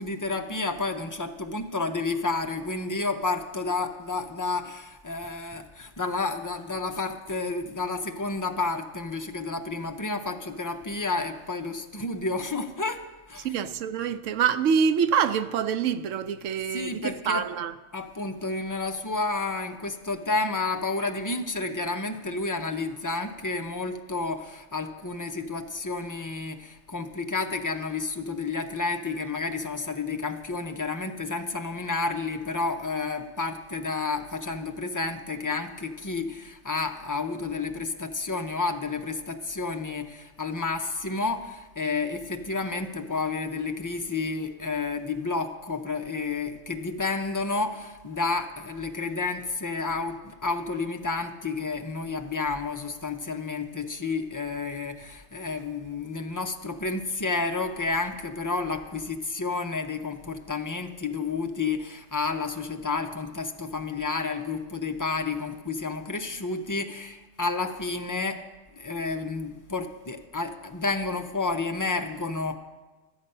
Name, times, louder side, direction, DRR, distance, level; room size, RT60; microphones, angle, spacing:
voice 1, 0.0-13.7 16.7-17.5 17.9-68.4 68.8-72.6, left 3 dB, 30° left, 0.4 m, -30 dB
voice 2, 13.4-17.7, right 7 dB, 90° right, 0.9 m, -26 dB
12.5 x 7.9 x 5.4 m
omnidirectional pair, 1.2 m